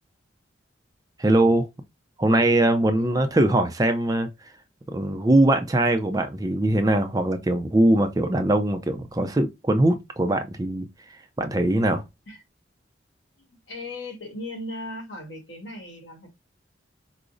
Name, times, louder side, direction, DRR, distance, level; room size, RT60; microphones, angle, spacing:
voice 1, 1.2-1.7 2.2-4.3 4.9-10.8 11.4-12.0, right 1 dB, 20° right, 0.4 m, -21 dB
voice 2, 2.9-3.3 12.3-12.4 13.4-16.3, left 1 dB, 70° left, 1.5 m, -37 dB
4.8 x 2.0 x 2.5 m
head